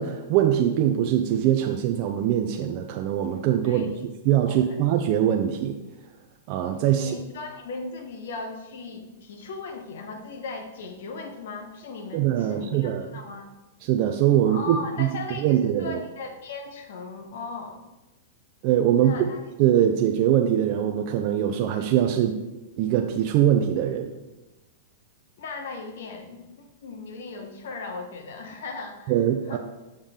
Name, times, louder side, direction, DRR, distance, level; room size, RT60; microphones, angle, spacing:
voice 1, 0.0-4.0 4.2-5.8 6.5-7.1 12.1-13.1 13.8-15.1 15.4-16.0 18.6-19.2 19.6-22.4 22.8-24.1 29.1-29.6, right 10 dB, 50° right, 4 dB, 0.5 m, -22 dB
voice 2, 3.6-4.1 4.5-4.8 6.9-13.5 14.4-17.8 19.0-19.4 25.4-29.1 29.5-29.6, left 3 dB, 70° left, 4 dB, 1.1 m, -37 dB
7.1 x 5.1 x 3.7 m, 1.1 s
hypercardioid pair, 120°, 0 cm